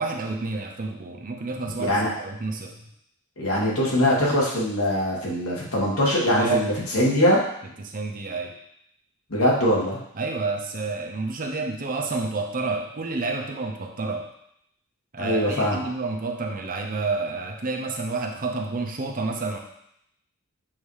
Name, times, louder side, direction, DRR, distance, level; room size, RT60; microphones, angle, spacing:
voice 1, 0.0-2.8 6.4-6.7 7.8-8.5 10.1-14.3 15.1-19.6, right 3 dB, 40° right, 2 dB, 0.7 m, -29 dB
voice 2, 1.8-2.1 3.4-7.4 9.3-10.0 15.2-15.8, equal, 75° left, -5 dB, 1.9 m, -22 dB
7.2 x 2.8 x 4.8 m, 0.73 s
head